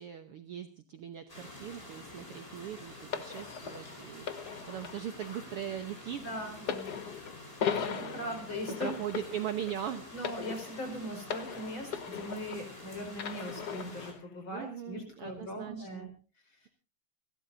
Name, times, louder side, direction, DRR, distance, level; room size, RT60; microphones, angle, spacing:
voice 1, 0.0-6.2 7.7-8.4 8.8-10.0 14.5-16.1, right 10 dB, 65° right, 8 dB, 1.5 m, -40 dB
sound 1, 1.3-14.1, left 2 dB, 15° left, 4.7 m, -49 dB
sound 2, 3.1-12.8 13.2-14.2 15.0-15.1, left 7 dB, 70° left, 0.9 m, -39 dB
voice 2, 6.2-7.1 7.8-8.9 10.1-16.1 16.5-16.7, equal, 40° left, 4 dB, 5.4 m, -40 dB
29.5 x 13.0 x 2.7 m, 0.33 s
omnidirectional pair, 3.5 m